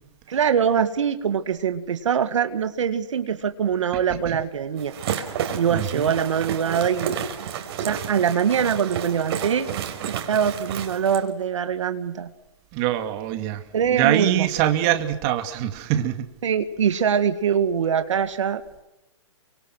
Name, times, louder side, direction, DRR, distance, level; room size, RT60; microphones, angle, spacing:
voice 1, 0.3-4.9 5.5-7.2 7.8-9.7 10.1-12.3 13.7-14.5 16.4-18.8, right 7 dB, 75° right, 9 dB, 2.0 m, -23 dB
voice 2, 3.9-4.4 5.7-6.1 12.7-16.3, right 12 dB, 35° right, 8 dB, 2.4 m, -24 dB
sound 1, 4.8-11.2, right 9 dB, 55° right, 4.2 m, -31 dB
28.5 x 25.0 x 6.3 m, 0.94 s
hypercardioid pair, 135°, 16 cm